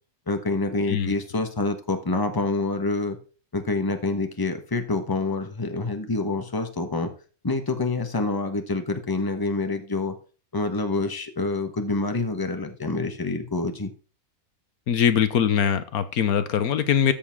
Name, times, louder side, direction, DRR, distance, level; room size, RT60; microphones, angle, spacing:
voice 1, 0.3-3.2 3.5-7.1 7.4-10.2 10.5-13.9, left 3 dB, 15° left, 7 dB, 1.2 m, -27 dB
voice 2, 14.9-17.1, left 8 dB, 80° left, 11 dB, 1.4 m, -22 dB
13.5 x 7.1 x 3.6 m, 0.37 s
omnidirectional pair, 1.5 m